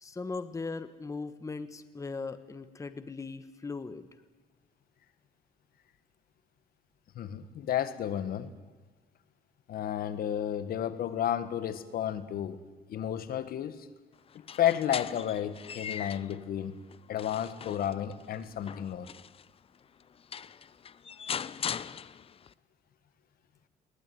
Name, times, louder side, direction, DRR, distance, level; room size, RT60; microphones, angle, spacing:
voice 1, 0.0-4.1, left 4 dB, 20° left, 11 dB, 1.3 m, -39 dB
voice 2, 7.1-8.5 9.7-12.6 12.9-13.9 14.3-16.8 17.1-19.1, left 10 dB, 60° left, 13 dB, 1.7 m, -32 dB
sound 1, 14.3-16.4 16.9-19.5 20.0-20.1 20.3-22.5, left 7 dB, 35° left, 0.7 m, -40 dB
22.0 x 19.0 x 9.5 m, 1.3 s
cardioid pair, 110°, 17 cm